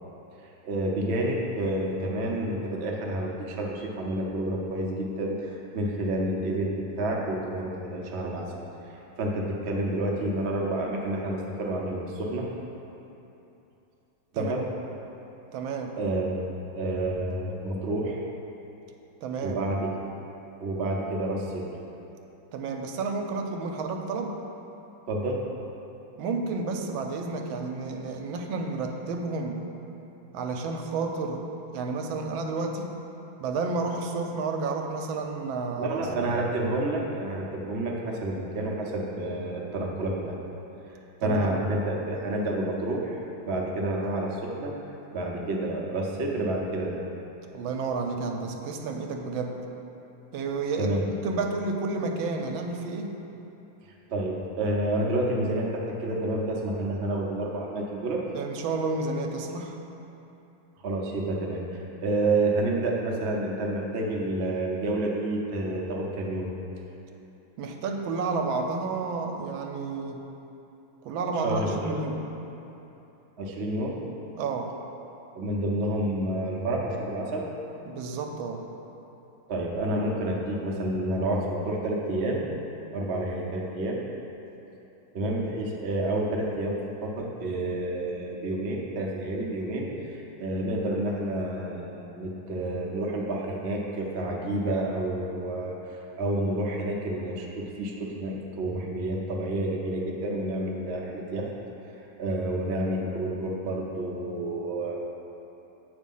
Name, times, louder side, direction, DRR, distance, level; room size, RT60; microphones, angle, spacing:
voice 1, 0.4-12.5 14.3-14.6 16.0-16.4 16.7-18.2 19.4-19.9 20.6-21.7 25.1-25.4 35.8-40.4 41.2-43.2 43.4-44.7 45.1-47.0 50.8-51.0 54.1-58.2 60.8-66.5 71.4-72.0 73.4-74.0 75.3-77.5 79.5-82.4 82.9-84.0 85.1-101.5 101.9-105.0, right 1 dB, 65° right, -2 dB, 0.6 m, -29 dB
voice 2, 15.5-16.0 19.2-19.6 22.5-24.3 26.2-29.6 30.3-31.4 31.7-32.9 33.4-36.1 41.2-41.6 47.5-49.6 50.3-53.1 58.3-59.8 67.6-70.3 71.0-72.3 74.4-74.8 77.9-78.6, right 3 dB, 85° right, 3 dB, 1.4 m, -31 dB
8.2 x 3.3 x 5.4 m, 3.0 s
omnidirectional pair, 2.2 m